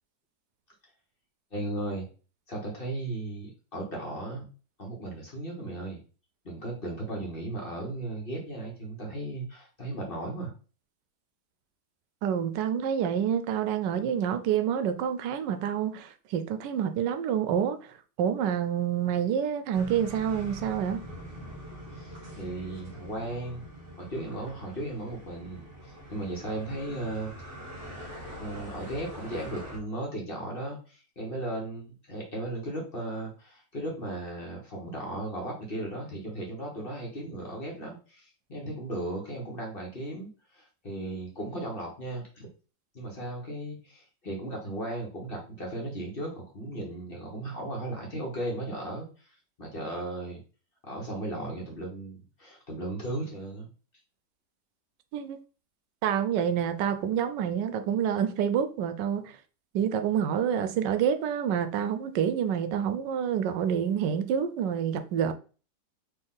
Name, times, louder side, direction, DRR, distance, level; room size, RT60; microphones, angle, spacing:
voice 1, 1.5-2.1 2.5-4.5 4.8-6.0 6.4-10.5 21.9-23.6 24.0-27.3 28.4-42.5 42.9-50.4 50.8-53.7, right 1 dB, 35° left, 1.2 m, -36 dB
voice 2, 12.2-21.0 55.1-55.4 56.0-59.3 59.7-65.3, right 8 dB, 85° right, 1.2 m, -28 dB
sound 1, 19.7-29.8, equal, 45° right, 1.7 m, -44 dB
4.4 x 2.9 x 3.8 m
omnidirectional pair, 1.8 m